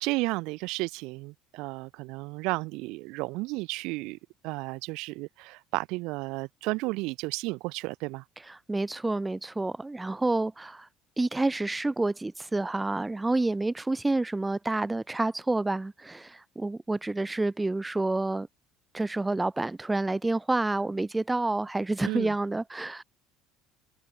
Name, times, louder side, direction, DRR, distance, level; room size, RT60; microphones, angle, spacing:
voice 1, 0.0-4.2 4.4-8.2 22.0-22.3, right 24 dB, 70° right, 0.9 m, -33 dB
voice 2, 8.7-10.9 11.2-18.5 18.9-23.0, right 2 dB, 15° right, 1.7 m, -28 dB
hypercardioid pair, 70°, 0 cm